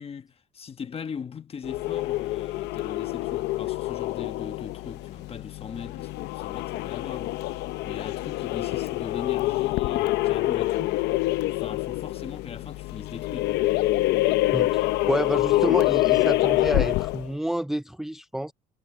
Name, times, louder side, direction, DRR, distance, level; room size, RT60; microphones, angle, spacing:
voice 1, 0.0-13.7, left 6 dB, 35° left, 1.2 m, -40 dB
sound 1, 1.6-17.3, left 18 dB, 85° left, 0.7 m, -26 dB
voice 2, 14.5-18.5, right 1 dB, ahead, 0.4 m, -29 dB
cardioid pair, 110°, 17 cm